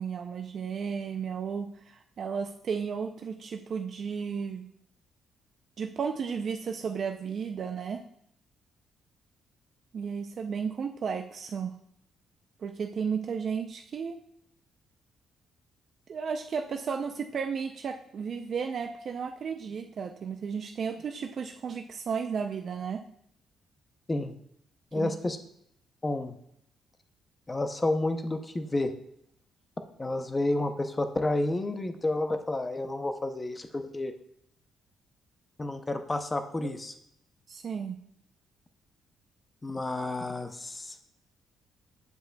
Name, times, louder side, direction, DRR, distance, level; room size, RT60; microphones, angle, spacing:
voice 1, 0.0-4.7 5.8-8.0 9.9-11.7 12.6-14.2 16.1-23.0 25.0-25.1 36.6-36.7 37.5-38.0, right 6 dB, 45° right, 5 dB, 0.4 m, -33 dB
voice 2, 24.9-25.4 26.0-26.3 27.5-28.9 30.0-34.1 35.6-36.9 39.6-41.0, left 2 dB, 15° left, 7 dB, 0.6 m, -30 dB
8.0 x 7.8 x 2.2 m, 0.71 s
cardioid pair, 145°, 0 cm